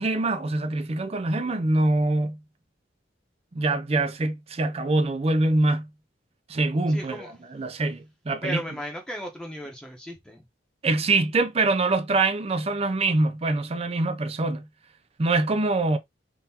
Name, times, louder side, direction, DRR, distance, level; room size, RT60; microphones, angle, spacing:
voice 1, 0.0-2.4 3.5-5.9 6.5-8.6 10.8-14.7 15.2-16.0, right 2 dB, 35° right, 0.5 m, -24 dB
voice 2, 6.9-7.3 8.4-10.4, equal, 5° left, 0.9 m, -35 dB
3.7 x 2.6 x 2.8 m
head